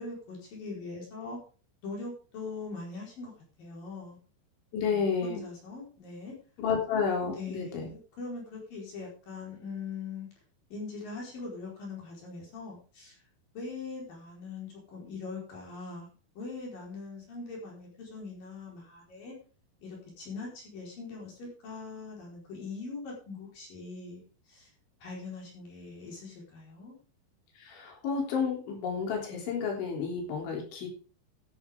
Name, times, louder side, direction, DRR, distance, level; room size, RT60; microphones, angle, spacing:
voice 1, 0.0-1.4 1.8-3.3 3.6-4.2 4.9-6.4 7.2-10.3 10.7-13.2 13.5-16.1 16.4-19.3 19.8-24.2 24.5-24.7 25.0-27.0, left 4 dB, 50° left, -2 dB, 5.9 m, -41 dB
voice 2, 4.7-5.4 6.6-7.9 27.6-30.9, left 6 dB, 80° left, 1 dB, 5.7 m, -31 dB
13.0 x 11.0 x 3.6 m, 0.38 s
omnidirectional pair, 5.3 m